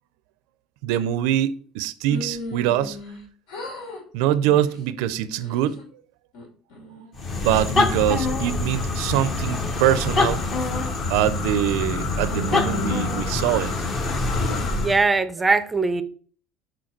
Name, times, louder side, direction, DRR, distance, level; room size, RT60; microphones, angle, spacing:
voice 1, 0.8-3.0 4.1-5.8 7.4-10.4 11.1-13.7, right 12 dB, 75° right, 0.4 m, -23 dB
sound 1, 2.1-3.2 3.5-4.0 4.4-4.8 5.3-5.8 6.3-7.1 7.5-9.2 9.7-9.9 10.5-10.9 11.5-11.9 12.3-13.9 14.4-14.9, left 2 dB, 70° left, 2.6 m, -37 dB
sound 2, 7.1-15.0, left 3 dB, 25° left, 0.8 m, -25 dB
voice 2, 14.8-16.0, right 3 dB, 10° right, 0.5 m, -20 dB
6.5 x 4.5 x 4.4 m
cardioid pair, 165°, 0 cm